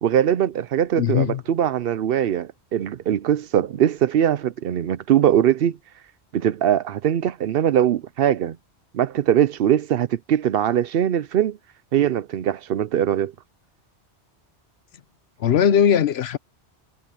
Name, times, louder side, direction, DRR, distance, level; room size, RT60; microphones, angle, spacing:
voice 1, 0.0-5.8 6.3-8.6 8.9-11.6 11.9-13.3, right 10 dB, 60° right, 0.7 m, -21 dB
voice 2, 1.0-1.4 15.4-16.4, left 8 dB, 65° left, 1.0 m, -19 dB
omnidirectional pair, 1.2 m